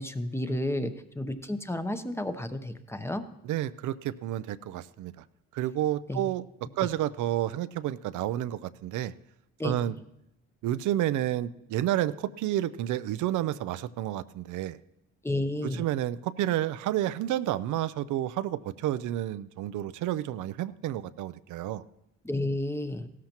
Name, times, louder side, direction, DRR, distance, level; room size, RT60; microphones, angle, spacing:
voice 1, 0.0-3.2 6.1-6.3 9.6-9.7 15.2-15.8 22.2-23.1, left 1 dB, 10° left, 9 dB, 0.7 m, -31 dB
voice 2, 0.5-0.9 3.5-5.2 5.5-6.4 6.8-9.1 9.6-10.0 10.6-14.8 15.6-21.8, right 13 dB, 80° right, 15 dB, 0.5 m, -30 dB
16.0 x 13.5 x 2.9 m, 0.82 s
cardioid pair, 90°, 30 cm